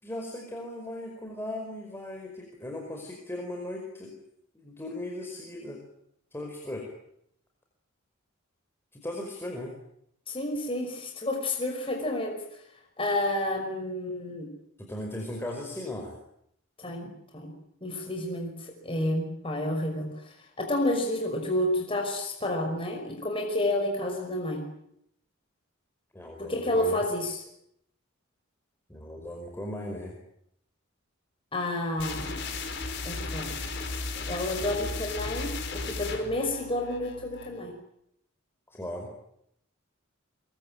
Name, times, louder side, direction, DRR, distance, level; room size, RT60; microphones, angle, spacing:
voice 1, 0.0-4.1 4.5-5.8 6.3-6.8 8.9-9.7 14.8-16.2 26.1-27.0 28.9-30.2 33.8-34.9 38.7-39.1, left 1 dB, 10° left, 1 dB, 5.0 m, -38 dB
voice 2, 10.3-12.4 13.0-14.5 16.8-17.5 17.8-24.6 26.4-27.4 31.5-32.4 33.0-33.6 34.3-37.7, left 1 dB, 25° left, 2 dB, 5.5 m, -30 dB
sound 1, 32.0-37.6, left 3 dB, 60° left, 4.8 m, -35 dB
24.5 x 23.5 x 9.1 m, 0.75 s
head